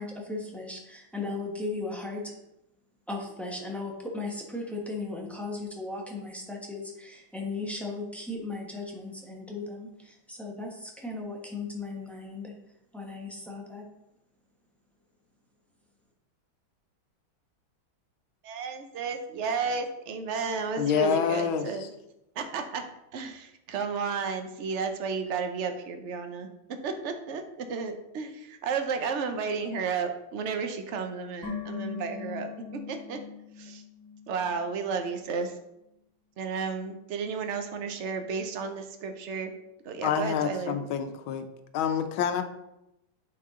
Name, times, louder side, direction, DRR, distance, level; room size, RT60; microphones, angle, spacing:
voice 1, 0.0-2.3 3.1-12.5 12.9-13.9, left 3 dB, ahead, -1 dB, 0.8 m, -36 dB
voice 2, 18.4-21.9 22.4-22.8 23.1-33.2 33.6-33.8 34.3-35.6 36.4-39.5 39.8-40.7, right 5 dB, 55° right, 6 dB, 0.8 m, -33 dB
voice 3, 20.8-21.6 40.0-41.4 41.7-42.4, left 8 dB, 90° left, 9 dB, 1.5 m, -27 dB
sound 1, 31.4-34.7 35.0-35.1, left 6 dB, 30° right, 2.4 m, -40 dB
8.5 x 4.8 x 3.7 m, 0.87 s
omnidirectional pair, 2.1 m